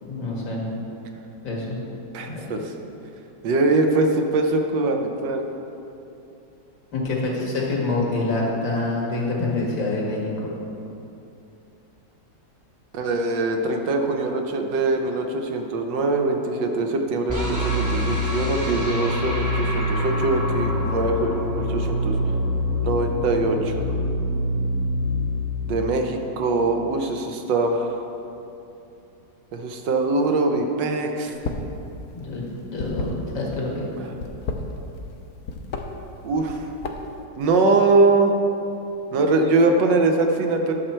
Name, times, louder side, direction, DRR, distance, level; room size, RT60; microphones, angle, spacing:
voice 1, 0.0-0.7 1.4-1.8 2.3-2.6 6.9-10.5 32.1-33.9, left 2 dB, 80° left, -3 dB, 2.5 m, -26 dB
voice 2, 2.1-2.7 3.4-5.4 12.9-22.2 22.8-23.9 25.6-28.0 29.5-31.3 34.0-34.1 36.2-36.7 37.4-38.3 39.1-40.7, right 3 dB, 75° right, 4 dB, 1.5 m, -22 dB
sound 1, 17.3-26.4, left 1 dB, 20° right, 0.5 m, -25 dB
sound 2, 31.3-31.8 32.0-33.6 34.1-35.2 35.5-35.8 36.4-37.2, left 4 dB, 65° left, 1.1 m, -31 dB
11.0 x 6.3 x 4.4 m, 2.8 s
omnidirectional pair, 2.0 m